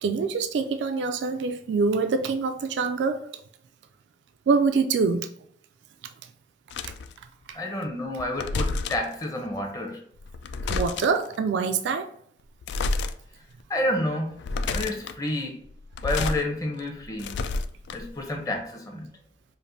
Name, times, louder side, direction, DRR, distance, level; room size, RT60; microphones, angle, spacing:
voice 1, 0.0-3.3 4.5-5.3 6.8-6.9 7.5-7.6 10.7-12.1 14.5-14.8, right 4 dB, 90° right, 0.3 m, -25 dB
sound 1, 6.7-7.1 8.2-9.1 10.2-11.3 12.6-13.1 13.6-13.7 14.3-15.2 15.8-16.4 16.8-18.2, left 3 dB, 80° left, 0.3 m, -29 dB
voice 2, 7.5-10.0 13.7-14.4 14.6-15.6 16.0-17.4 17.9-19.1, left 1 dB, 20° left, 0.7 m, -29 dB
5.2 x 2.5 x 2.6 m
head